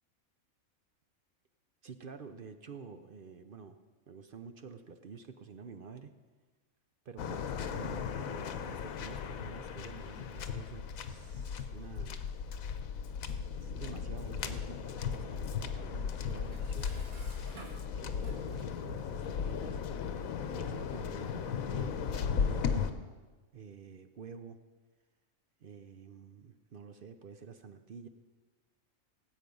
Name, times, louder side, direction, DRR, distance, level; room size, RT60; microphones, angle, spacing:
voice 1, 1.8-3.8 4.1-6.1 7.0-12.3 13.6-19.8 20.3-23.0 23.5-24.6 25.6-28.1, right 5 dB, 50° right, 9 dB, 0.7 m, -49 dB
Waves surf, 7.2-22.9, left 6 dB, 75° left, 1.2 m, -36 dB
Dishes pots and pans, 16.3-18.8, right 3 dB, 80° right, 2.2 m, -53 dB
18.0 x 8.3 x 5.3 m, 1.3 s
omnidirectional pair, 1.5 m